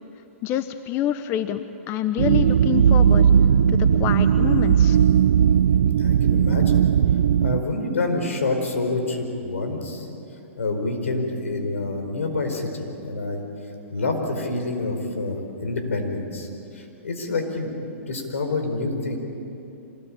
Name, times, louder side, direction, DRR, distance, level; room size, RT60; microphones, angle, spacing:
voice 1, 0.4-3.3 3.7-5.0, left 11 dB, 35° left, 11 dB, 0.9 m, -27 dB
sound 1, 2.2-7.6, right 8 dB, 70° right, 0.5 m, -17 dB
voice 2, 6.0-6.8 7.4-10.1 10.6-13.4 13.9-16.5 16.7-17.7 18.1-19.2, left 2 dB, 85° left, 4 dB, 4.8 m, -27 dB
26.0 x 20.0 x 8.9 m, 2.8 s
hypercardioid pair, 130°, 7 cm